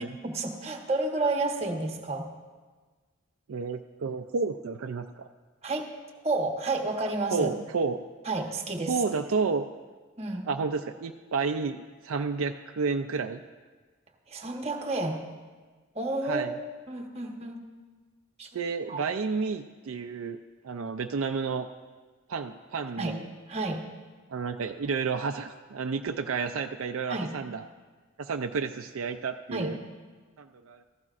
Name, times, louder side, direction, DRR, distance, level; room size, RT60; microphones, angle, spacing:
voice 1, 0.0-2.3 5.6-5.9 6.2-7.5 8.2-9.0 10.2-10.5 14.3-15.2 15.9-16.5 16.9-17.6 18.4-18.5 18.9-19.0 23.0-23.2 23.5-23.8 27.1-27.3 29.5-29.7, right 2 dB, 30° right, 2 dB, 1.1 m, -30 dB
voice 2, 3.5-5.3 7.3-8.0 8.9-9.7 10.5-13.4 16.2-16.6 18.5-20.4 20.6-21.7 22.3-23.2 24.3-27.6 28.2-29.8 30.4-30.8, right 5 dB, 65° right, 6 dB, 0.4 m, -31 dB
16.0 x 14.5 x 2.5 m, 1.4 s
head